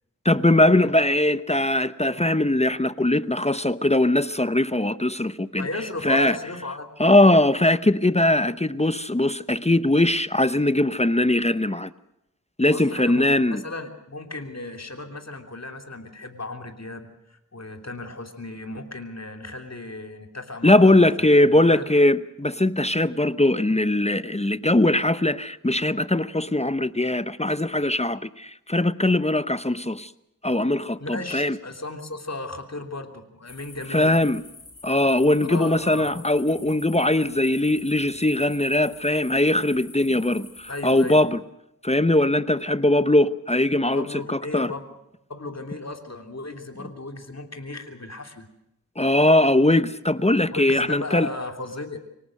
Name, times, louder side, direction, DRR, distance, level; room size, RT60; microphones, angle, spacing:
voice 1, 0.2-5.7 6.0-6.4 7.0-11.9 12.6-13.6 20.6-30.1 30.4-31.6 33.9-34.4 34.8-41.4 41.8-44.7 49.0-51.3, left 1 dB, 20° left, 0.8 m, -20 dB
voice 2, 5.6-6.9 12.6-21.8 31.0-34.3 35.5-36.1 40.7-41.2 43.9-44.8 45.3-48.5 50.5-52.0, left 2 dB, 50° left, 3.2 m, -35 dB
sound 1, 33.4-41.2, left 3 dB, 75° left, 6.9 m, -46 dB
25.0 x 18.0 x 6.5 m
wide cardioid pair, 40°, 32 cm